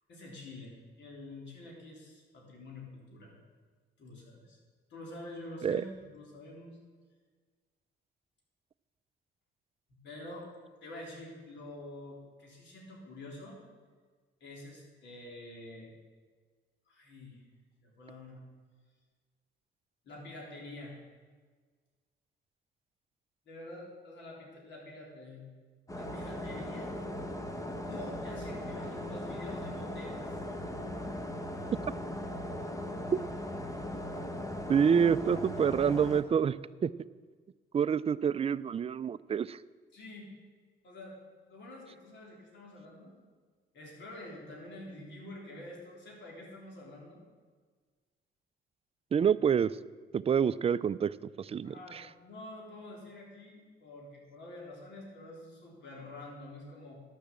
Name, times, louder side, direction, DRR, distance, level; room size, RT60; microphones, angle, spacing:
voice 1, 0.1-3.4 4.0-4.6 4.9-6.8 10.0-10.5 10.8-13.6 14.4-15.9 16.9-17.4 17.8-18.4 20.0-21.0 23.5-25.4 25.9-26.9 27.9-30.3 39.9-40.3 40.8-41.2 41.5-43.1 43.7-47.2 51.6-57.0, left 1 dB, 65° left, -1 dB, 3.5 m, -47 dB
sound 1, 25.9-36.2, left 1 dB, 15° left, 1.1 m, -38 dB
voice 2, 34.7-36.9 37.7-39.6 49.1-49.8 50.1-52.1, right 7 dB, 30° right, 16 dB, 0.4 m, -27 dB
11.5 x 6.7 x 7.4 m, 1.5 s
cardioid pair, 90°, 20 cm